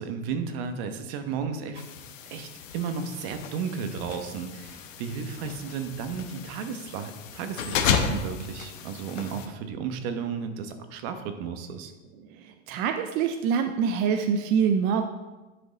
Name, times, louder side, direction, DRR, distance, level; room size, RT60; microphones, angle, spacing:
voice 1, 0.0-1.9 2.3-11.9, right 6 dB, 50° right, 8 dB, 1.1 m, -34 dB
sound 1, 1.7-9.5, left 7 dB, 80° left, 1.0 m, -33 dB
voice 2, 12.3-15.0, right 7 dB, 30° right, 6 dB, 0.4 m, -25 dB
10.0 x 5.1 x 4.0 m, 1.2 s
supercardioid pair, 130°, 39 cm